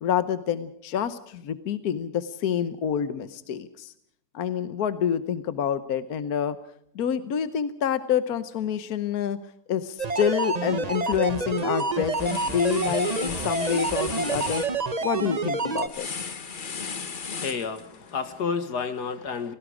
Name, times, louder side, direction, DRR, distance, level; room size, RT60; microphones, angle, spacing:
voice 1, 0.0-3.9 4.3-6.6 6.9-9.4 9.7-14.7 15.0-16.1, left 8 dB, 70° left, 12 dB, 1.4 m, -27 dB
sound 1, 10.0-15.9, right 4 dB, 30° right, 0.9 m, -28 dB
sound 2, 10.9-11.3 11.6-18.1, left 5 dB, 35° left, 1.1 m, -36 dB
voice 2, 17.4-19.5, left 5 dB, 90° left, 10 dB, 2.3 m, -30 dB
28.5 x 18.0 x 5.0 m, 0.71 s
omnidirectional pair, 1.7 m